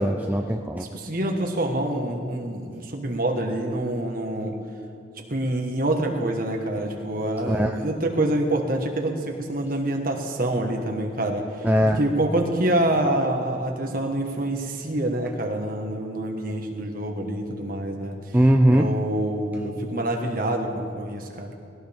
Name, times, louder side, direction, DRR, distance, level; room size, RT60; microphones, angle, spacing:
voice 1, 0.0-0.9 7.5-7.8 11.6-12.0 18.3-18.9, equal, 10° right, 3 dB, 0.4 m, -20 dB
voice 2, 0.9-4.6 5.3-11.7 12.0-18.4 18.7-21.5, right 1 dB, 45° right, 2 dB, 1.6 m, -26 dB
19.5 x 17.0 x 3.6 m, 2.4 s
head